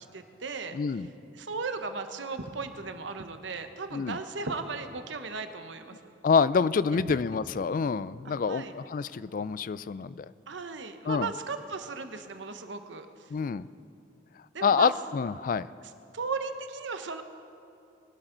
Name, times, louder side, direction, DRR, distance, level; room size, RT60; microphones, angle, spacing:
voice 1, 0.1-0.7 1.3-6.0 6.9-7.2 8.2-8.7 10.5-13.3 14.5-14.9 16.1-17.2, right 4 dB, 75° right, 8 dB, 0.9 m, -36 dB
voice 2, 0.7-1.1 3.9-4.2 6.2-10.3 11.1-11.3 13.3-13.6 14.6-15.7, left 5 dB, 45° left, 16 dB, 0.3 m, -27 dB
21.5 x 11.5 x 3.9 m, 2.6 s
head